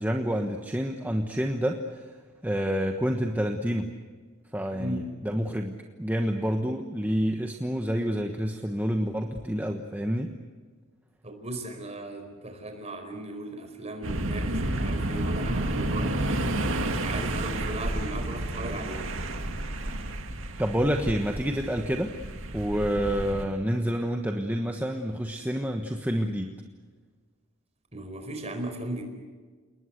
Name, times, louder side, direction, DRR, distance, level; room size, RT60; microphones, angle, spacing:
voice 1, 0.0-2.0 2.4-3.9 4.5-10.3 20.6-22.1 22.5-26.5, equal, 10° right, 3 dB, 1.2 m, -28 dB
voice 2, 4.7-5.1 11.2-16.5 16.9-19.1 27.9-29.0, right 1 dB, 30° right, 5 dB, 4.7 m, -37 dB
sound 1, 14.0-23.4, right 1 dB, 60° right, 2.4 m, -30 dB
29.5 x 20.0 x 8.1 m, 1.5 s
head